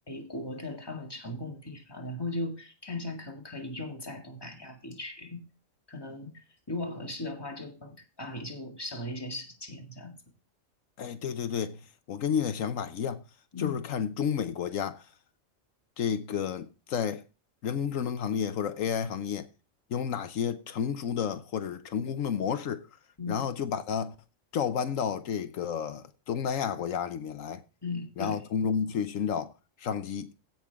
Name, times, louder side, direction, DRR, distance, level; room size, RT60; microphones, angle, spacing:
voice 1, 0.0-5.4 5.9-10.2 13.5-13.8 23.2-23.5 27.8-28.5, left 2 dB, 20° left, 2.0 m, -38 dB
voice 2, 11.0-11.8 12.1-13.2 13.6-15.0 16.0-17.2 17.6-19.5 19.9-22.9 23.3-24.1 24.5-27.6 28.2-29.5 29.8-30.3, left 7 dB, 85° left, 1.2 m, -31 dB
16.0 x 6.0 x 3.5 m
omnidirectional pair, 1.3 m